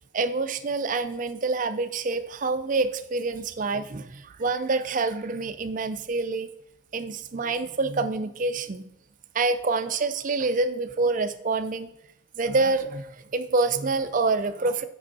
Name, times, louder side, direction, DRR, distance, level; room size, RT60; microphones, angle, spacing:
voice 1, 0.1-6.5 6.9-8.8 9.3-11.9 12.4-14.8, right 3 dB, 40° right, 10 dB, 0.4 m, -27 dB
7.7 x 5.4 x 4.1 m, 0.76 s
head